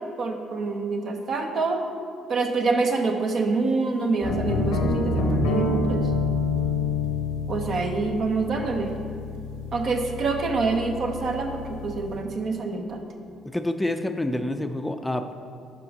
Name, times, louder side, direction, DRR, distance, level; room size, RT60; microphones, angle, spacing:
voice 1, 0.2-1.8 2.3-6.1 7.5-8.9 9.7-13.0, right 3 dB, 55° right, 4 dB, 0.8 m, -26 dB
sound 1, 4.2-12.1, left 3 dB, 90° left, 0.8 m, -27 dB
voice 2, 13.5-15.3, left 1 dB, 10° left, 8 dB, 0.4 m, -27 dB
5.4 x 5.2 x 5.3 m, 2.5 s
supercardioid pair, 60°, 0 cm